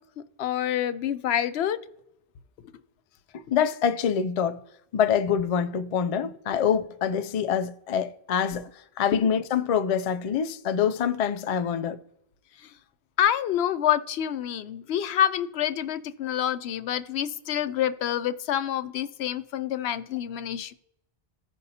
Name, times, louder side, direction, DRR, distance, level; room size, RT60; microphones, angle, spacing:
voice 1, 0.4-1.8 9.1-9.2 13.2-20.7, left 10 dB, 85° left, 0.8 m, -27 dB
voice 2, 3.3-4.6 4.9-8.7 9.0-12.0, left 8 dB, 50° left, 0.4 m, -25 dB
16.0 x 5.3 x 2.8 m
omnidirectional pair, 1.1 m